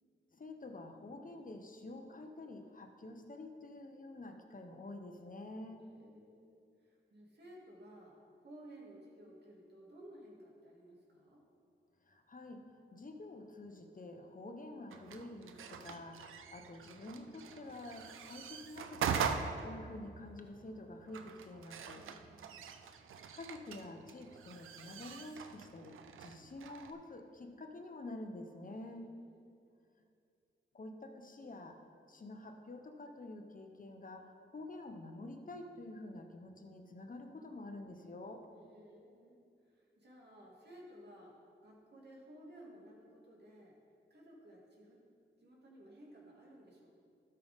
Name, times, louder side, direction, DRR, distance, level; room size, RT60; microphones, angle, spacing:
voice 1, 0.3-5.8 12.1-12.6 12.9-22.1 23.3-29.1 30.7-31.8 32.1-38.5, left 2 dB, 40° left, 5 dB, 1.1 m, -48 dB
voice 2, 5.8-11.5 21.9-22.7 28.7-29.6 38.6-41.4 41.6-43.8 44.1-45.0 45.4-46.9, right 1 dB, 55° right, -3 dB, 2.4 m, -57 dB
sound 1, 14.9-26.9, right 6 dB, 90° right, 0.5 m, -43 dB
12.5 x 5.7 x 3.7 m, 2.4 s
cardioid pair, 45°, 20 cm